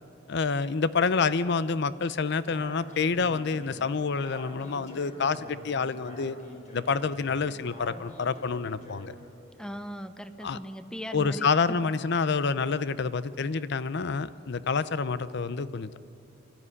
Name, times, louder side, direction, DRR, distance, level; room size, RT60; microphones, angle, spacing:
voice 1, 0.3-6.4 6.7-9.1 10.4-10.6 11.1-16.0, left 5 dB, 60° left, 15 dB, 0.6 m, -28 dB
Speech, 2.5-9.3, equal, 40° left, 3.9 m, -45 dB
voice 2, 9.6-11.8, equal, 5° left, 10 dB, 0.7 m, -39 dB
24.0 x 14.0 x 9.7 m, 2.8 s
head